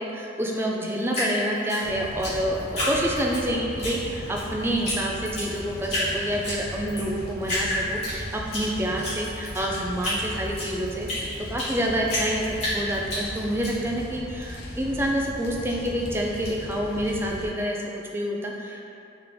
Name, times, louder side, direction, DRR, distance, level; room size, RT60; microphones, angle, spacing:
voice 1, 0.0-2.6 2.9-18.9, equal, 10° right, -1 dB, 0.3 m, -28 dB
Drip, 1.1-3.4 3.8-4.5 4.8-5.0 5.2-6.1 6.4-7.1 7.4-8.6 9.0-11.8 12.1-13.7, left 1 dB, 35° left, 1.4 m, -29 dB
sound 1, 1.8-17.5, equal, 50° left, 0.6 m, -38 dB
3.7 x 3.2 x 3.4 m, 2.7 s
head